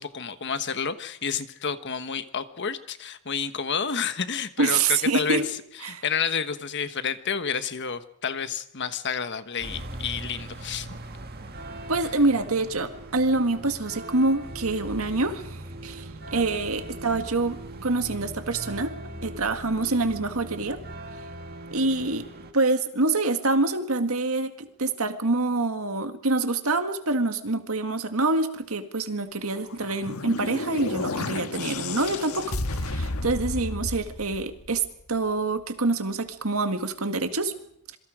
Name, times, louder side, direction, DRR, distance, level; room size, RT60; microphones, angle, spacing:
voice 1, 0.0-5.4 5.8-10.9, left 6 dB, 55° left, 11 dB, 1.3 m, -30 dB
voice 2, 4.6-5.5 5.8-6.0 11.9-15.5 15.8-18.9 19.2-20.8 21.7-22.3 22.5-34.8 35.1-37.5, right 3 dB, 75° right, 8 dB, 1.9 m, -26 dB
sound 1, 9.6-22.5, right 1 dB, 45° right, 1.9 m, -40 dB
sound 2, 29.7-35.0, left 2 dB, 80° left, 1.4 m, -32 dB
26.5 x 23.5 x 5.0 m, 0.72 s
head